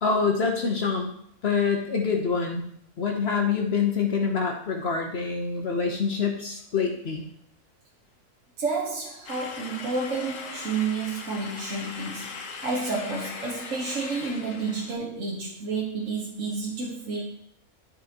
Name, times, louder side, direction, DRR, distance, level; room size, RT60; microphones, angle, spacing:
voice 1, 0.0-1.1 1.4-2.6 3.0-7.2, left 5 dB, 55° left, 2 dB, 1.0 m, -26 dB
voice 2, 8.6-12.4 12.6-17.2, right 4 dB, 70° right, -2 dB, 1.3 m, -30 dB
sound 1, 9.3-14.9, left 4 dB, 70° left, 1.3 m, -39 dB
12.0 x 4.3 x 2.8 m, 0.69 s
omnidirectional pair, 1.4 m